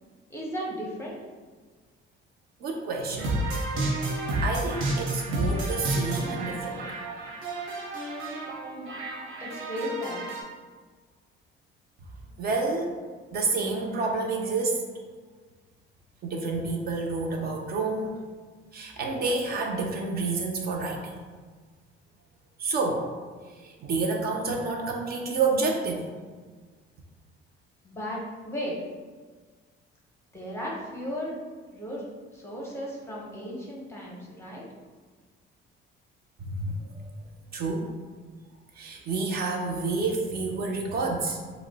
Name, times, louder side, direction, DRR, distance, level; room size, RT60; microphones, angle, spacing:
voice 1, 0.3-1.2 9.4-10.2 27.8-28.8 30.3-31.4 31.7-32.0 32.3-34.6, equal, 10° left, -4 dB, 0.6 m, -35 dB
voice 2, 2.6-3.5 4.4-7.0 12.4-12.9 13.3-14.8 16.2-18.2 18.7-21.2 22.6-23.1 23.5-26.1 36.4-36.8 37.5-37.9 38.7-41.5, right 3 dB, 50° right, 0 dB, 0.4 m, -29 dB
sound 1, 3.2-10.4, right 1 dB, 80° right, 0.8 m, -30 dB
2.9 x 2.0 x 3.9 m, 1.5 s
cardioid pair, 155°, 21 cm